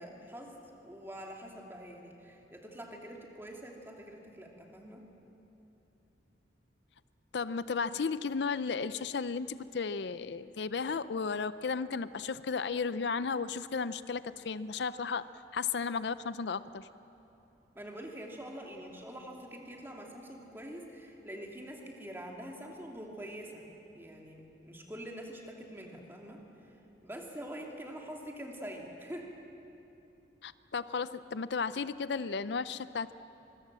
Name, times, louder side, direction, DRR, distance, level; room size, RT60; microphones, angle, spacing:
voice 1, 0.0-5.1 17.7-23.6 23.9-26.4 27.0-29.3, equal, 15° right, 0 dB, 2.7 m, -45 dB
voice 2, 7.3-15.3 15.5-16.9 30.4-33.1, left 5 dB, 65° left, 15 dB, 0.5 m, -34 dB
25.0 x 22.5 x 7.5 m, 2.9 s
head